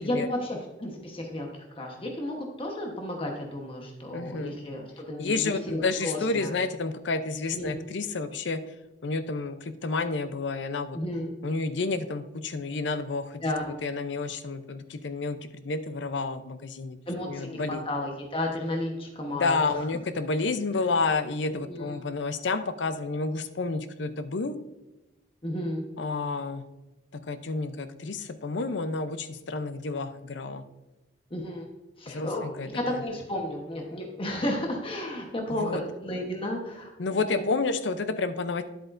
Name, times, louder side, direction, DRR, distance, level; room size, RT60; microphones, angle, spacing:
voice 1, 0.0-6.5 7.5-7.8 10.9-11.3 13.4-13.7 17.1-19.8 21.7-21.9 25.4-25.8 31.3-31.7 32.0-37.4, left 1 dB, 30° left, 1 dB, 1.1 m, -33 dB
voice 2, 4.1-4.6 5.2-8.6 9.0-11.0 11.4-17.0 17.3-17.8 19.3-24.6 26.0-26.6 27.3-30.6 32.1-33.0 35.6-35.8 37.0-38.6, left 3 dB, 70° left, 10 dB, 0.6 m, -30 dB
10.5 x 8.0 x 2.6 m, 1.0 s
head